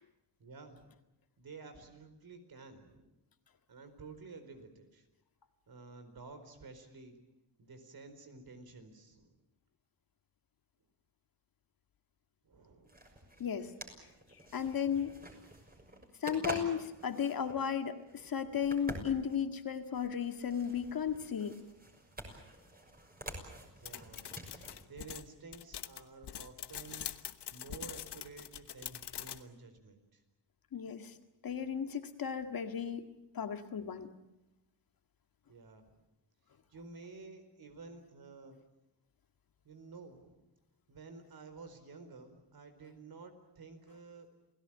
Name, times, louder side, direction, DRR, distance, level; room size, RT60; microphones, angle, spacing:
voice 1, 0.4-0.9 1.4-3.1 3.7-5.1 5.7-7.2 7.6-9.4 12.4-12.9 14.0-14.1 23.8-24.3 24.8-27.1 27.5-30.2 35.5-36.0 36.7-38.6 39.6-40.4 40.9-44.3, right 4 dB, 60° right, 8 dB, 4.6 m, -52 dB
sound 1, 12.9-24.8, right 1 dB, 20° right, 6.4 m, -48 dB
voice 2, 13.4-13.7 14.5-15.2 16.2-21.6 30.7-31.1 31.4-33.1 33.3-34.1, left 7 dB, 55° left, 7 dB, 2.0 m, -35 dB
sound 2, 23.9-29.4, left 10 dB, 80° left, 1.2 m, -44 dB
28.5 x 17.0 x 8.9 m, 0.95 s
cardioid pair, 105°, 40 cm